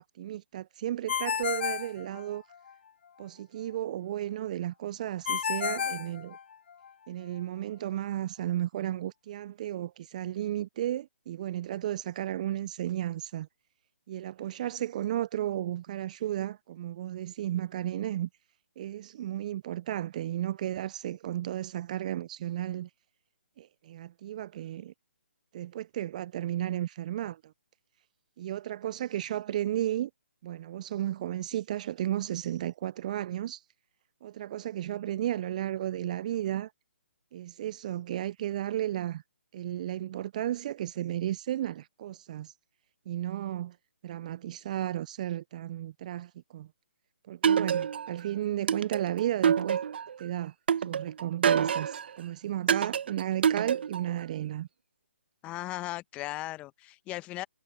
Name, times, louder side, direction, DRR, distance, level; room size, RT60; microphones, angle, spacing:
voice 1, 0.0-2.4 3.2-6.4 7.1-13.5 14.1-18.3 18.8-22.9 23.6-24.9 25.5-27.5 28.4-30.1 30.4-33.6 34.2-36.7 37.3-39.2 39.5-42.5 43.1-43.8 44.0-46.7 47.3-49.8 50.2-50.5 50.9-54.7, right 12 dB, 35° right, 0.4 m, -34 dB
Ringtone, 1.1-2.7 5.3-6.9, left 7 dB, 55° left, 0.5 m, -32 dB
sound 1, 47.4-48.2 48.7-50.1 50.7-52.1 52.7-54.1, right 7 dB, 55° right, 0.9 m, -26 dB
voice 2, 55.4-57.5, left 17 dB, 20° left, 1.0 m, -37 dB
figure-of-eight pair, 140°, 7 cm